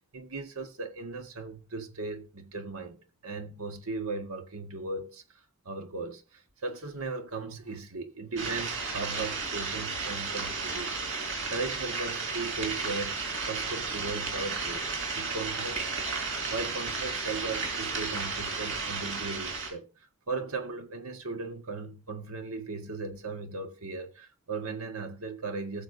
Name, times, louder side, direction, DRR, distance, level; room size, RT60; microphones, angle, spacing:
voice 1, 0.0-5.2 5.6-14.9 15.1-15.9 16.5-19.9 20.3-25.8, right 3 dB, 80° right, 1.7 m, -37 dB
sound 1, 8.4-19.7, right 4 dB, 60° right, 4.9 m, -33 dB
19.5 x 7.2 x 2.7 m
head